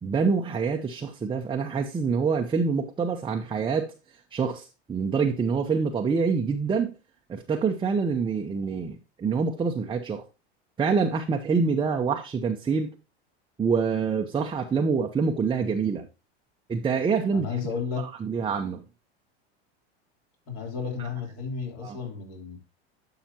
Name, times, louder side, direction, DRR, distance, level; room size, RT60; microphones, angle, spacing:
voice 1, 0.0-3.9 4.3-6.9 7.3-10.2 10.8-12.9 13.6-16.1 16.7-17.5 18.2-18.8 21.0-21.1 21.8-22.0, right 5 dB, 15° right, 0.7 m, -26 dB
voice 2, 17.3-18.1 20.5-22.6, left 6 dB, 50° left, 3.2 m, -33 dB
11.5 x 5.8 x 2.8 m
hypercardioid pair, 105°, 32 cm